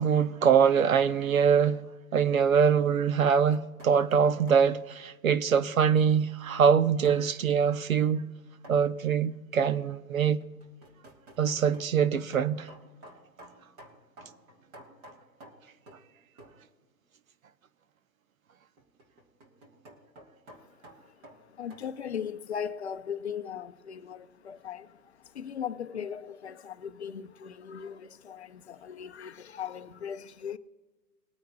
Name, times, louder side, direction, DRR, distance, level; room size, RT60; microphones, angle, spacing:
voice 1, 0.0-1.8 2.1-8.3 8.7-10.4 11.4-12.7, right 7 dB, 55° right, 0.8 m, -24 dB
sound 1, 3.5-4.7 7.0-7.3 8.6-8.9 10.2-16.1 16.4-16.7 18.8-21.9, right 1 dB, 20° right, 1.5 m, -52 dB
voice 2, 20.5-30.6, left 8 dB, 40° left, 0.7 m, -39 dB
21.0 x 9.1 x 2.4 m
figure-of-eight pair, 135°, 49 cm